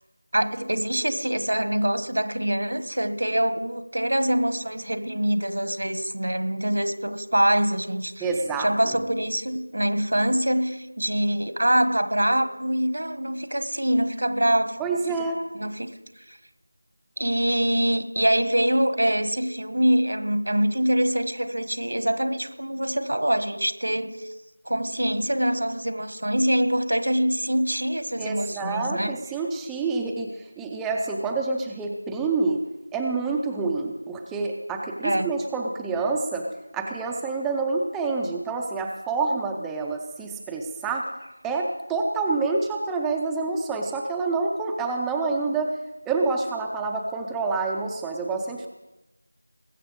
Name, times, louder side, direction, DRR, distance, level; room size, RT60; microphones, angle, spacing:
voice 1, 0.3-8.3 8.6-14.8 15.5-15.9 17.2-24.3 24.7-29.2 35.0-35.3, right 1 dB, 70° right, 12 dB, 1.3 m, -24 dB
voice 2, 8.2-9.0 14.8-15.4 28.2-32.6 32.9-36.5 36.7-41.1 41.4-45.7 46.1-48.7, right 3 dB, 5° right, 1 dB, 0.5 m, -27 dB
20.5 x 7.5 x 5.2 m, 0.99 s
figure-of-eight pair, 175°, 0 cm